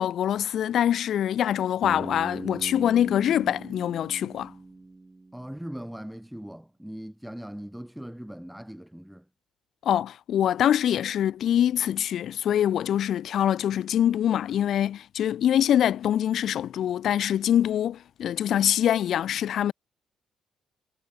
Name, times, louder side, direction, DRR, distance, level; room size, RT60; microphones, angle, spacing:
voice 1, 0.0-4.5 9.8-19.7, left 10 dB, 70° left, 0.8 m, -24 dB
Bass guitar, 1.8-5.8, right 3 dB, 20° right, 3.2 m, -41 dB
voice 2, 5.3-9.2, equal, 5° right, 0.8 m, -40 dB
cardioid pair, 90°, 0 cm